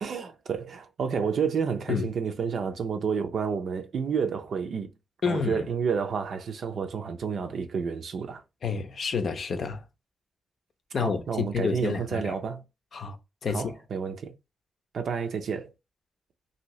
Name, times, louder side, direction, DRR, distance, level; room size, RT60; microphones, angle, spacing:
voice 1, 0.0-4.9 5.3-8.4 10.9-12.6 13.5-14.3 14.9-15.7, right 6 dB, 75° right, 0.5 m, -30 dB
voice 2, 5.2-5.6 8.6-9.8 10.9-12.4 12.9-13.2 13.4-13.7, left 5 dB, 60° left, 0.6 m, -29 dB
2.7 x 2.7 x 3.0 m
cardioid pair, 105°, 0 cm